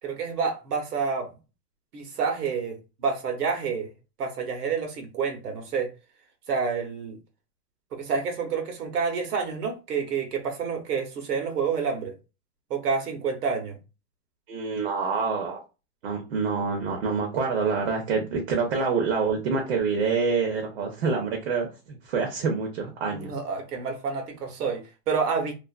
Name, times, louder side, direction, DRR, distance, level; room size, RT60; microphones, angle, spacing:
voice 1, 0.0-1.3 1.9-3.9 4.2-5.9 6.5-7.2 7.9-12.1 12.7-13.8 23.1-25.5, right 5 dB, 70° right, 0.9 m, -28 dB
voice 2, 14.5-15.6 16.0-23.3, right 5 dB, 45° right, 0.6 m, -26 dB
2.4 x 2.4 x 2.3 m
hypercardioid pair, 160°, 48 cm